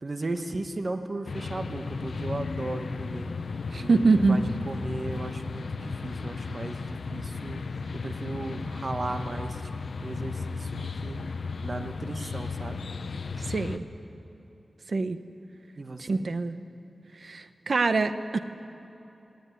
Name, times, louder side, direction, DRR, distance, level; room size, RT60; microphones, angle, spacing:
voice 1, 0.0-3.3 3.8-7.6 7.9-9.6 10.0-11.2 11.6-12.9 15.8-16.3, right 2 dB, 40° right, 6 dB, 1.3 m, -36 dB
sound 1, 1.3-13.8, left 4 dB, 75° left, 0.9 m, -35 dB
voice 2, 3.7-4.4 13.4-13.9 14.9-15.2 16.0-16.6 17.2-18.4, right 3 dB, 55° right, 10 dB, 0.9 m, -24 dB
18.5 x 18.0 x 9.6 m, 3.0 s
wide cardioid pair, 120°, 0 cm